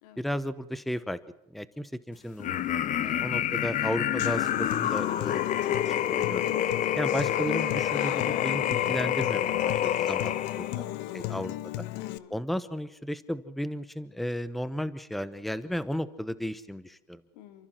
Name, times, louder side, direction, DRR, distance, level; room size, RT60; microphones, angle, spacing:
voice 1, 0.2-1.2 1.5-2.7 3.0-5.4 5.9-6.4 6.9-10.7 11.1-11.9 12.3-17.2, equal, ahead, 16 dB, 0.9 m, -34 dB
sound 1, 2.4-10.8, left 11 dB, 40° left, 1.2 m, -28 dB
Human voice / Acoustic guitar, 4.2-12.2, left 17 dB, 60° left, 1.1 m, -35 dB
voice 2, 4.8-5.2 10.7-11.5 11.9-12.4 17.4-17.7, left 10 dB, 75° left, 10 dB, 2.9 m, -45 dB
28.5 x 14.5 x 7.5 m, 0.85 s
supercardioid pair, 120°, 20 cm